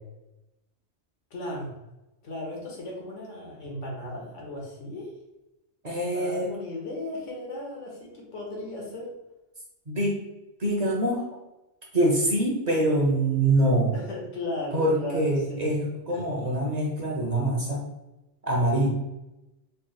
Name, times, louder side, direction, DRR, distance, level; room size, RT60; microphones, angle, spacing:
voice 1, 1.3-1.7 2.2-5.1 5.9-9.1 13.9-15.8 16.1-16.3, left 1 dB, 85° left, -2 dB, 1.4 m, -36 dB
voice 2, 5.8-6.5 9.9-10.2 10.6-11.3 11.9-13.9 14.7-17.8 18.4-18.9, right 1 dB, 40° right, -2 dB, 0.7 m, -24 dB
4.1 x 2.1 x 3.9 m, 0.96 s
omnidirectional pair, 1.2 m